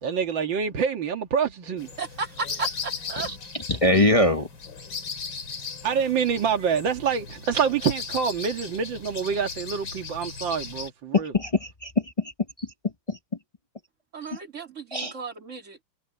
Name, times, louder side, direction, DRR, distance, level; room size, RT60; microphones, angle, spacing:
voice 1, 0.0-1.9 5.8-11.3, right 7 dB, 70° right, 2.5 m, -26 dB
sound 1, 1.8-10.9, left 5 dB, 70° left, 3.7 m, -37 dB
voice 2, 1.8-3.3 14.1-15.8, right 4 dB, 35° right, 2.6 m, -34 dB
voice 3, 3.7-4.5 11.1-11.9 12.2-12.3 12.6-12.7 13.1-13.2 14.9-15.1, left 2 dB, 30° left, 0.6 m, -22 dB
omnidirectional pair, 2.2 m